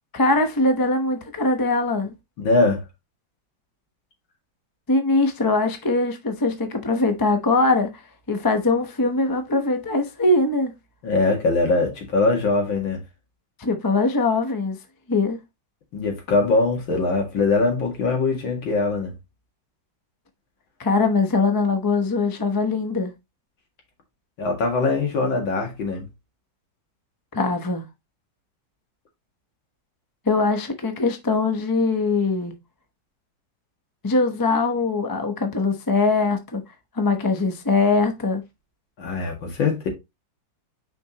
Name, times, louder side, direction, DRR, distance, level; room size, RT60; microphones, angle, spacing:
voice 1, 0.1-2.1 4.9-8.0 8.3-10.7 13.6-14.8 15.1-15.4 20.8-23.1 27.3-27.8 30.3-32.5 34.0-36.6 36.9-38.4, left 3 dB, 30° left, 0.3 m, -22 dB
voice 2, 2.4-2.8 11.0-13.0 15.9-19.1 24.4-26.1 39.0-39.9, left 3 dB, 90° left, 2.7 m, -22 dB
6.2 x 5.2 x 2.9 m
omnidirectional pair, 2.0 m